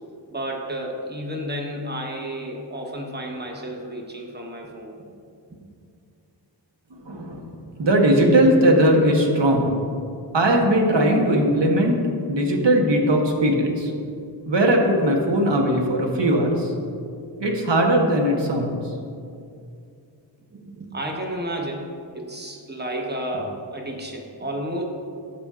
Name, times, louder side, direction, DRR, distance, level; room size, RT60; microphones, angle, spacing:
voice 1, 0.3-4.9 20.5-24.8, right 1 dB, 20° right, 0 dB, 1.0 m, -31 dB
voice 2, 7.0-7.5 7.8-9.7 10.3-12.0 12.3-13.9 14.5-16.7 17.4-18.8, right 1 dB, 70° right, 1 dB, 1.1 m, -19 dB
13.0 x 4.4 x 2.5 m, 2.4 s
wide cardioid pair, 60°, 45 cm